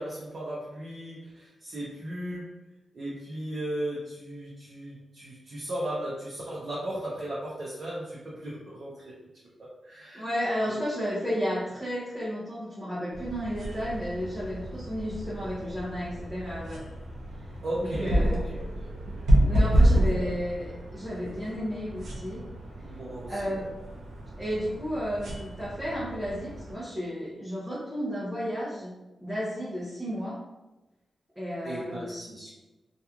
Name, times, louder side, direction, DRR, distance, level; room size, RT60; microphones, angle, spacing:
voice 1, 0.0-2.5 2.9-9.1 9.8-10.2 10.7-10.8 17.6-19.2 19.5-20.3 22.8-23.6 31.6-32.5, right 1 dB, 45° right, -7 dB, 0.6 m, -36 dB
voice 2, 10.1-16.8 17.8-18.4 19.4-22.4 23.3-23.7 24.4-29.0 29.2-30.4 31.4-32.1, equal, 5° right, -9 dB, 0.6 m, -33 dB
sound 1, 13.1-26.7, equal, 90° right, 0.6 m, -29 dB
2.9 x 2.4 x 2.3 m, 1.1 s
wide cardioid pair, 150°, 0 cm